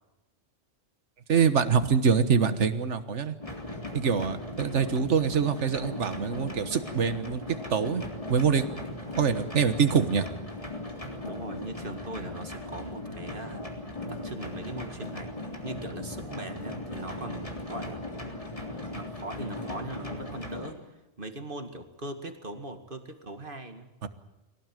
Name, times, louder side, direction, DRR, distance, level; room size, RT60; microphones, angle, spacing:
voice 1, 1.3-3.4 3.9-7.4 7.7-8.6 9.2-10.3 24.0-24.1, right 6 dB, 70° right, 10 dB, 1.7 m, -25 dB
sound 1, 3.4-20.7, left 2 dB, 25° left, 3.7 m, -38 dB
voice 2, 11.2-13.7 14.0-15.4 15.6-18.1 18.9-20.8 21.2-23.9, right 2 dB, 45° right, 6 dB, 2.3 m, -40 dB
24.5 x 18.0 x 9.2 m, 0.99 s
omnidirectional pair, 1.3 m